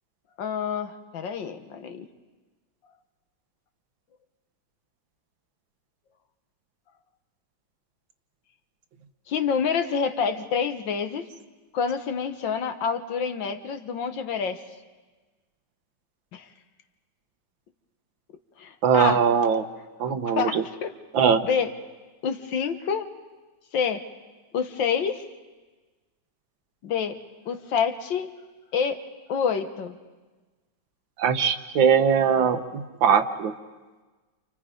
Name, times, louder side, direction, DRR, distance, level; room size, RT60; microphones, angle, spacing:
voice 1, 0.4-2.1 9.3-11.2 11.7-14.6 16.3-16.5 18.6-19.2 20.0-20.9 21.4-21.7 22.2-23.1 23.7-24.0 24.5-25.2 26.8-27.2 27.5-28.3 28.7-29.0 29.3-30.0, left 6 dB, 80° left, 9 dB, 1.9 m, -27 dB
voice 2, 18.8-19.7 20.0-20.6 21.1-21.4 31.2-33.5, right 7 dB, 90° right, 8 dB, 1.9 m, -21 dB
29.5 x 28.0 x 5.3 m, 1.3 s
omnidirectional pair, 2.0 m